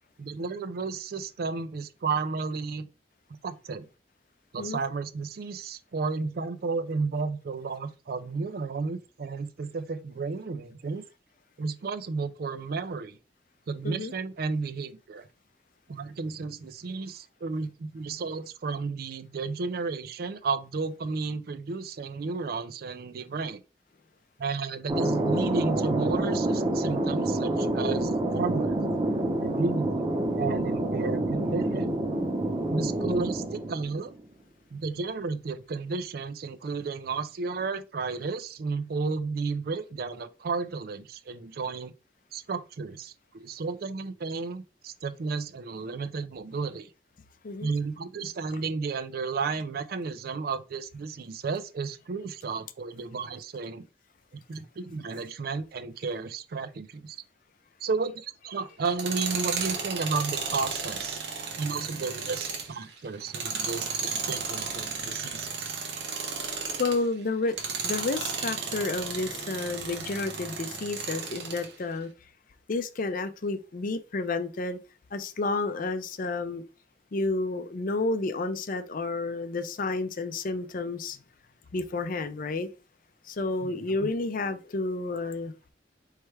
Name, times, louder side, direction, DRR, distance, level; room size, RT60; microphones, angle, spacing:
voice 1, 0.2-2.9 3.4-3.9 4.5-11.0 11.6-13.2 13.7-15.3 15.9-23.6 24.4-28.8 29.4-32.0 32.7-34.1 34.7-41.9 42.3-46.9 47.6-53.9 54.3-57.2 57.8-61.2 61.6-65.8 83.6-83.7 84.0-84.1, right 4 dB, 60° right, 0.4 m, -33 dB
Thunder, 24.9-34.2, right 1 dB, 25° right, 0.8 m, -27 dB
Tools, 58.8-67.0 67.5-71.7, right 5 dB, 75° right, 1.0 m, -34 dB
voice 2, 66.8-67.6 67.8-72.1 72.7-74.8 75.1-76.6 77.1-81.2 81.7-82.7 83.3-85.5, left 3 dB, 50° left, 0.5 m, -30 dB
4.5 x 3.2 x 3.2 m
head